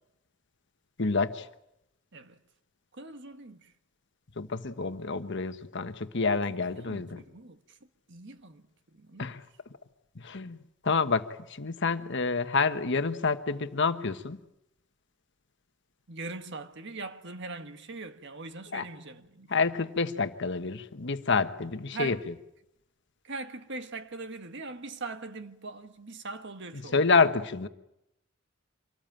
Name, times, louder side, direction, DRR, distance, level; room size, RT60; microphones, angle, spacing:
voice 1, 1.0-1.5 4.4-7.2 9.2-9.4 10.2-10.6 10.8-14.4 18.7-18.9 19.5-22.2 26.9-27.7, left 4 dB, 60° left, 1.2 m, -28 dB
voice 2, 2.9-3.7 6.5-7.8 8.1-8.6 8.9-9.4 16.1-19.5 21.9-22.2 23.2-27.3, right 3 dB, 60° right, 1.5 m, -41 dB
25.5 x 19.0 x 9.0 m
head